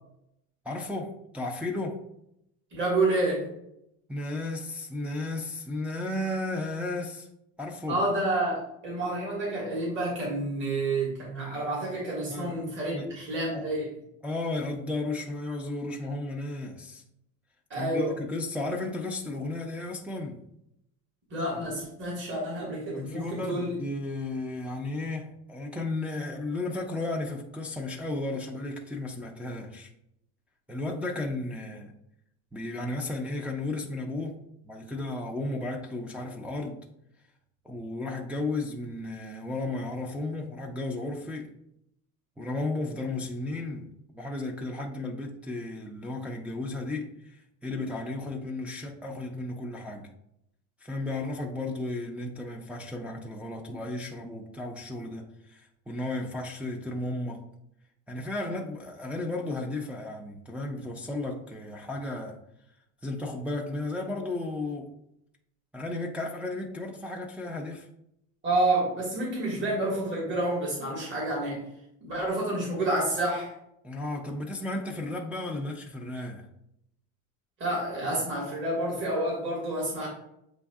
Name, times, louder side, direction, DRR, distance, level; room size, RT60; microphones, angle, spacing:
voice 1, 0.7-2.1 4.1-7.3 7.6-8.0 12.3-12.6 12.9-13.1 13.5-13.6 14.2-17.0 17.7-20.4 22.9-29.9 30.7-31.9 32.5-36.9 37.6-41.5 42.4-50.1 50.8-57.5 58.1-62.4 63.0-64.9 65.7-67.9 73.8-76.5, left 2 dB, 5° right, -1 dB, 0.4 m, -34 dB
voice 2, 2.7-3.5 7.9-13.9 17.7-18.1 21.3-23.7 68.4-71.6 72.0-73.5 77.6-80.1, right 2 dB, 30° right, -4 dB, 1.6 m, -29 dB
7.8 x 2.6 x 2.3 m, 0.79 s
cardioid pair, 125°, 36 cm